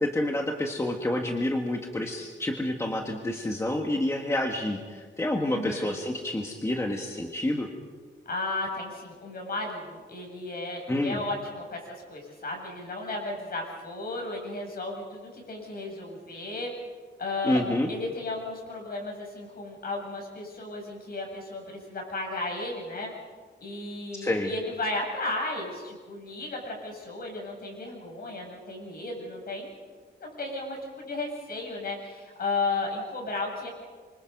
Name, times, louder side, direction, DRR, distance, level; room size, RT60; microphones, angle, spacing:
voice 1, 0.0-7.7 10.9-11.2 17.4-17.9 24.2-24.5, left 1 dB, 15° left, 2 dB, 1.6 m, -28 dB
voice 2, 5.5-5.9 8.3-16.7 17.2-17.6 17.9-23.1 23.6-29.7 30.2-33.7, left 2 dB, 55° left, 0 dB, 7.7 m, -34 dB
27.5 x 25.5 x 5.3 m, 1.5 s
wide cardioid pair, 160°, 19 cm